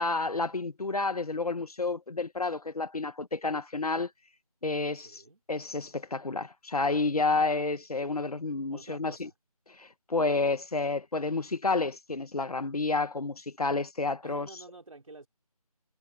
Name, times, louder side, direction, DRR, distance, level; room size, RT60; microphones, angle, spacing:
voice 1, 0.0-4.1 4.6-5.2 5.5-9.3 9.8-14.5, left 3 dB, 75° left, 1.7 m, -30 dB
voice 2, 5.0-5.4 8.7-9.3 14.2-15.3, right 3 dB, 60° right, 3.7 m, -49 dB
figure-of-eight pair, 175°, 20 cm